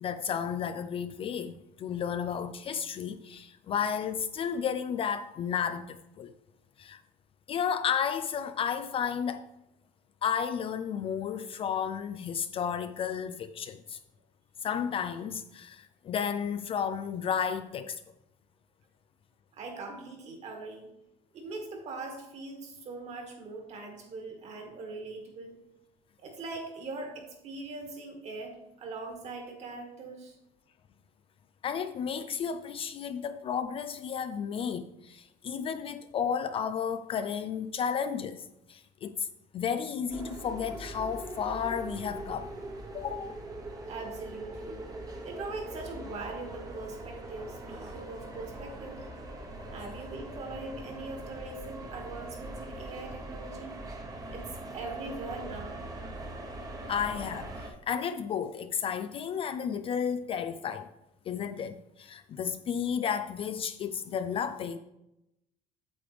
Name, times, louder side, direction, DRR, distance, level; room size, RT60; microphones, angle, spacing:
voice 1, 0.0-6.3 6.8-7.0 7.5-9.4 10.2-14.0 14.6-18.0 31.6-39.3 39.5-42.5 42.9-43.4 56.9-60.9 61.3-64.8, left 7 dB, 35° left, 0.3 m, -32 dB
voice 2, 19.5-20.9 21.3-25.6 26.2-30.4 43.9-44.9 45.2-49.0 49.7-53.8 54.3-55.8, right 3 dB, 40° right, 1.9 m, -41 dB
sound 1, 40.1-57.7, right 2 dB, 20° right, 1.1 m, -42 dB
8.5 x 7.6 x 3.4 m
cardioid pair, 150°, 17 cm